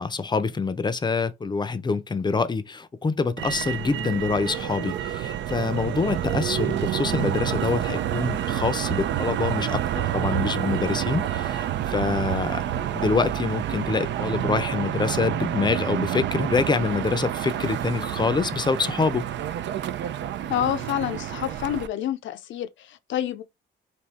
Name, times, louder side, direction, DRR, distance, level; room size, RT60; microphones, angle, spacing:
voice 1, 0.0-19.2, left 4 dB, 20° left, 0.6 m, -26 dB
Motor vehicle (road), 3.4-21.9, right 11 dB, 65° right, 0.5 m, -28 dB
voice 2, 20.5-23.4, left 11 dB, 70° left, 0.6 m, -28 dB
3.5 x 2.7 x 4.1 m
cardioid pair, 90°, 20 cm